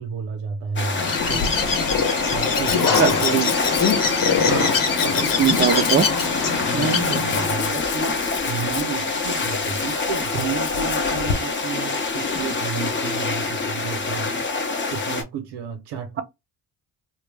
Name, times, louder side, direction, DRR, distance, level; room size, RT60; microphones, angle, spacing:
voice 1, 0.0-1.5 2.3-3.4 4.5-5.3 6.7-8.2 8.5-14.5 14.9-16.2, right 6 dB, 80° right, 0.7 m, -31 dB
sound 1, 0.8-15.2, left 3 dB, 30° left, 0.7 m, -25 dB
Bird, 0.9-7.5, left 6 dB, 55° left, 0.9 m, -23 dB
Domestic sounds home sounds, 1.2-11.3, left 7 dB, 80° left, 0.6 m, -33 dB
voice 2, 2.9-3.5 5.4-6.1, right 8 dB, 30° right, 0.5 m, -21 dB
2.2 x 2.1 x 3.2 m
cardioid pair, 65°, 41 cm